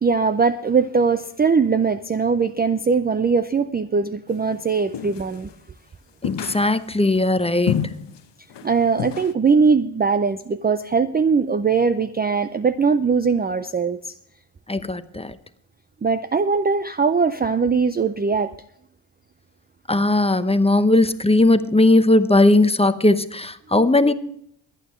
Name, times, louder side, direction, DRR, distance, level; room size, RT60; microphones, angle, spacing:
voice 1, 0.0-5.5 8.6-14.1 16.0-18.6, right 5 dB, 20° right, 11 dB, 0.4 m, -20 dB
sound 1, 4.9-5.5 6.2-7.1 7.7-8.2 8.5-8.7 9.0-9.3, left 9 dB, 55° left, 1.0 m, -28 dB
voice 2, 6.2-7.9 14.7-15.4 19.9-24.1, left 2 dB, 10° left, 11 dB, 0.8 m, -18 dB
23.5 x 9.1 x 3.1 m, 0.72 s
cardioid pair, 80°, 50 cm